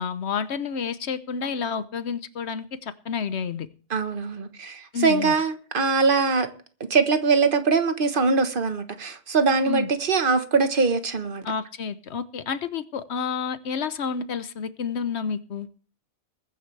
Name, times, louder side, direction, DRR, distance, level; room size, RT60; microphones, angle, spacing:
voice 1, 0.0-3.7 4.9-5.3 9.7-9.9 11.4-15.7, left 6 dB, 80° left, 1.2 m, -30 dB
voice 2, 3.9-6.5 6.9-11.4, right 4 dB, 55° right, 1.4 m, -22 dB
21.0 x 9.8 x 3.3 m
omnidirectional pair, 1.1 m